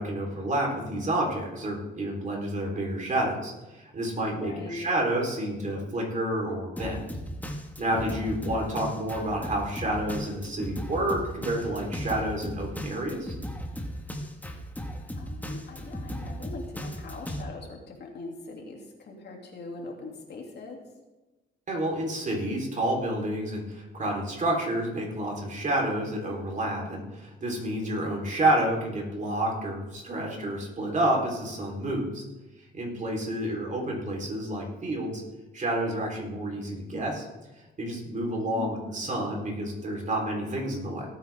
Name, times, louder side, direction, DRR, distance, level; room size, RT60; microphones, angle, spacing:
voice 1, 0.0-7.0 7.8-13.3 21.7-32.2 32.7-35.2 35.5-37.3 37.8-41.1, right 1 dB, 40° right, -1 dB, 4.1 m, -29 dB
voice 2, 4.2-4.9 8.0-8.2 15.2-20.8 38.5-39.2, left 3 dB, 60° left, 0 dB, 2.9 m, -41 dB
Drum kit, 6.8-17.4, equal, 10° left, 1.8 m, -36 dB
18.0 x 9.1 x 3.7 m, 1.1 s
cardioid pair, 90°, 20 cm